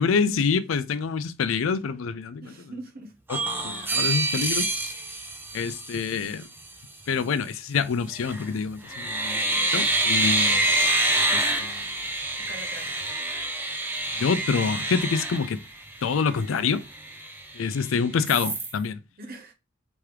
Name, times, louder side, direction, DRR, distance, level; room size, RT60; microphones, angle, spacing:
voice 1, 0.0-2.5 3.3-4.7 5.5-6.5 7.1-10.7 11.3-12.0 14.2-15.6 16.0-16.8 17.5-19.0, left 5 dB, 85° left, 0.4 m, -26 dB
voice 2, 2.4-3.2 9.5-9.7 10.2-10.6 12.4-12.9 19.2-19.5, right 2 dB, 50° right, 0.9 m, -43 dB
sound 1, 3.3-6.3 8.1-8.5 8.9-16.1 16.6-16.7 16.9-17.8 18.2-18.7, right 2 dB, 10° right, 0.5 m, -26 dB
3.4 x 3.2 x 3.0 m
head